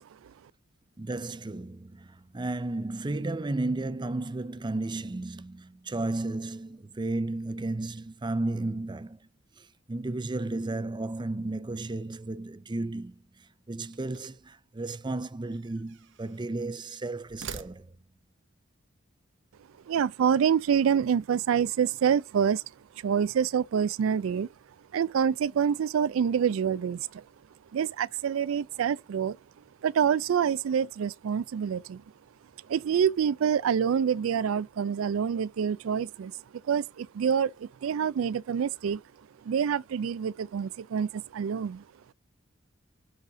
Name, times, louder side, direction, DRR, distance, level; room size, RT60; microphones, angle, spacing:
voice 1, 1.0-9.2 9.6-13.2 13.7-17.9, right 2 dB, 25° right, 0.5 m, -33 dB
sound 1, 13.7-14.6 15.5-16.5 17.2-18.2, right 6 dB, 65° right, 0.8 m, -45 dB
voice 2, 19.9-22.6 23.0-24.5 24.9-27.2 27.7-29.4 29.8-32.0 32.7-36.3 36.7-39.0 39.4-41.8, right 7 dB, 85° right, 0.4 m, -26 dB
8.3 x 4.1 x 4.9 m
head